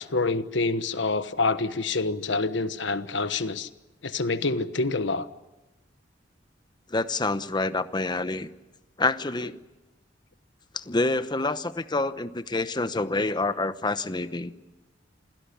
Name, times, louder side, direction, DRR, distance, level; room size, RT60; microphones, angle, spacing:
voice 1, 0.0-3.7 4.0-5.3, left 3 dB, 70° left, 12 dB, 1.2 m, -27 dB
voice 2, 6.9-8.5 9.0-9.6 10.7-14.5, left 2 dB, 25° left, 12 dB, 0.9 m, -27 dB
27.5 x 17.0 x 9.9 m, 1.1 s
head